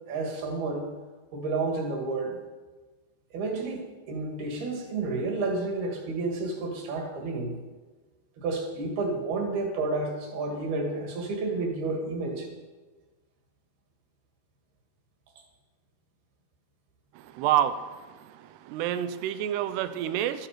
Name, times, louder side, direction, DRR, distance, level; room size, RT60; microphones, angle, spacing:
voice 1, 0.1-0.9 1.3-2.4 3.3-3.8 4.1-7.6 8.4-12.5, right 3 dB, 70° right, 2 dB, 3.8 m, -30 dB
voice 2, 17.3-17.8 18.7-20.5, right 11 dB, 85° right, 12 dB, 2.8 m, -27 dB
13.5 x 13.0 x 5.0 m, 1.3 s
omnidirectional pair, 4.8 m